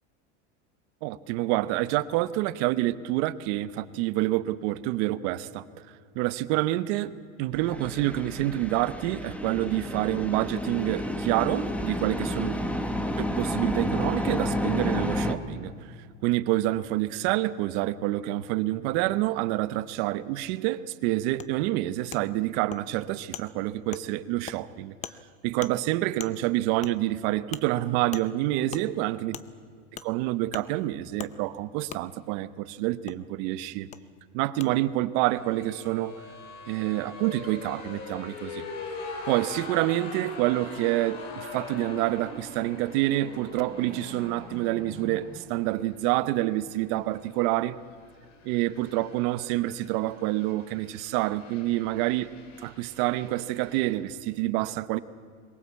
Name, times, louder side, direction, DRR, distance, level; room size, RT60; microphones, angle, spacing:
voice 1, 1.0-5.6 6.1-7.1 7.4-12.5 13.2-16.0 16.2-25.2 25.4-29.4 30.0-33.9 34.3-36.3 36.7-38.7 39.3-47.8 48.4-55.0, right 16 dB, 60° right, 15 dB, 1.0 m, -27 dB
sound 1, 7.5-15.4, left 1 dB, 5° left, 1.1 m, -30 dB
Wood, 21.4-21.5 22.1-22.2 22.7-22.8 23.3-23.4 23.9-24.0 24.5-24.6 25.0-25.2 25.6-25.7 26.2-26.3 26.8-26.9 27.5-27.6 28.1-28.3 28.7-28.8 29.3-29.5 30.0-30.1 30.5-30.6 31.2-31.3 31.9-32.0 33.1-33.2 33.9-34.0 34.6-34.7, left 9 dB, 20° left, 0.6 m, -39 dB
sound 2, 35.3-53.9, left 3 dB, 80° left, 4.1 m, -43 dB
22.5 x 17.0 x 8.4 m, 2.2 s
supercardioid pair, 145°, 36 cm